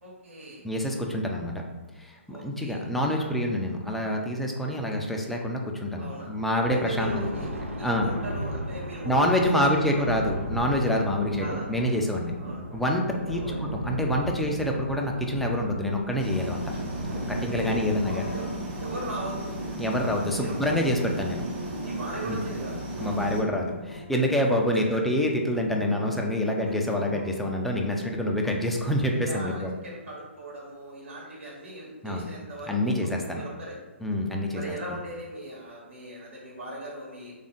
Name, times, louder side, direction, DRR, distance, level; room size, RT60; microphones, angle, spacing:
voice 1, 0.0-0.7 2.3-3.3 5.9-6.3 6.7-7.5 7.8-10.1 11.4-11.7 12.4-12.6 13.2-13.6 17.6-18.5 18.8-19.6 20.4-20.6 21.8-22.8 24.9-25.0 29.2-33.8 34.5-37.3, right 1 dB, 70° right, -4 dB, 1.2 m, -39 dB
voice 2, 0.6-1.6 2.0-7.3 7.8-8.1 9.1-12.3 12.7-16.6 17.3-18.3 19.8-21.4 23.0-29.7 32.0-32.3 32.7-33.4 34.0-34.8, left 1 dB, ahead, 0 dB, 0.4 m, -27 dB
Thunder, 6.5-24.2, right 1 dB, 85° right, 0.5 m, -37 dB
sound 1, 16.2-23.4, right 1 dB, 30° right, 1.1 m, -35 dB
sound 2, 16.3-19.2 19.5-22.2 23.0-24.6 25.0-27.5, left 1 dB, 85° left, 0.4 m, -45 dB
3.4 x 2.5 x 3.8 m, 1.2 s
figure-of-eight pair, 125°, 7 cm